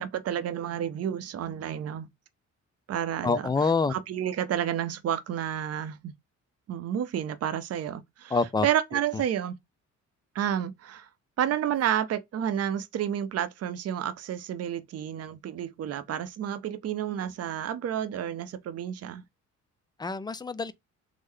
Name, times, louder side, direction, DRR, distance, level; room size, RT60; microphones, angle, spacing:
voice 1, 0.0-2.1 2.9-6.1 6.7-9.6 10.3-11.1 11.4-19.2, right 10 dB, 55° right, 0.6 m, -30 dB
voice 2, 3.2-3.9 8.3-8.7 20.0-20.7, left 4 dB, 15° left, 0.3 m, -26 dB
3.6 x 2.0 x 3.2 m
cardioid pair, 90°, 30 cm